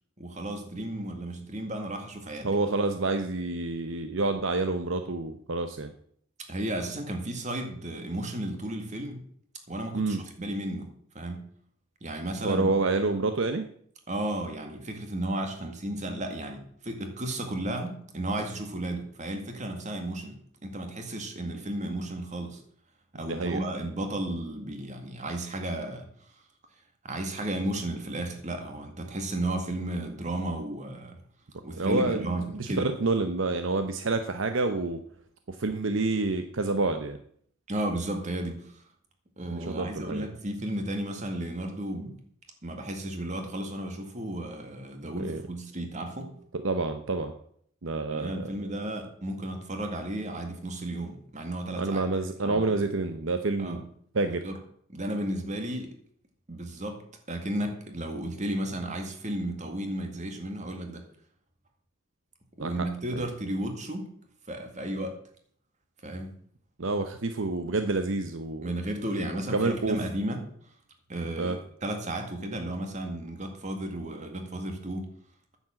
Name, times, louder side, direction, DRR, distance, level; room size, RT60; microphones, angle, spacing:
voice 1, 0.2-2.5 6.5-9.2 9.7-10.9 11.1-11.4 12.0-12.7 14.1-22.6 23.1-26.1 27.0-31.2 31.6-32.9 37.7-38.8 39.4-42.2 42.6-46.3 48.1-52.0 52.4-52.6 53.6-53.8 54.2-54.6 54.9-56.0 56.5-57.0 57.3-61.0 62.6-64.1 64.5-65.2 66.0-66.3 68.6-70.4 71.1-75.1, right 1 dB, 35° right, 5 dB, 2.1 m, -33 dB
voice 2, 2.4-5.9 9.9-10.2 12.4-13.7 23.2-23.6 31.7-35.0 35.5-37.2 39.5-40.3 45.2-45.4 46.6-47.3 47.8-48.7 51.8-53.8 54.1-54.4 62.6-62.7 63.1-63.3 66.8-68.7 69.5-70.0 71.4-71.6, right 3 dB, 65° right, 8 dB, 0.8 m, -28 dB
9.7 x 7.4 x 7.7 m, 0.63 s
head